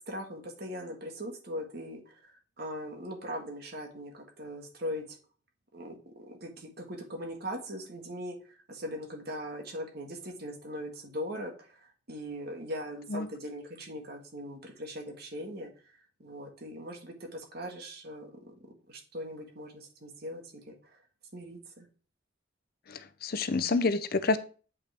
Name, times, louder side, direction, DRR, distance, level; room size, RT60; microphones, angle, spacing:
voice 1, 0.1-5.2 5.7-15.7 16.2-21.0 21.3-21.8, equal, 50° right, 2 dB, 1.7 m, -40 dB
voice 2, 22.9-24.4, left 3 dB, 50° left, 12 dB, 0.6 m, -28 dB
8.4 x 5.5 x 3.4 m, 0.39 s
head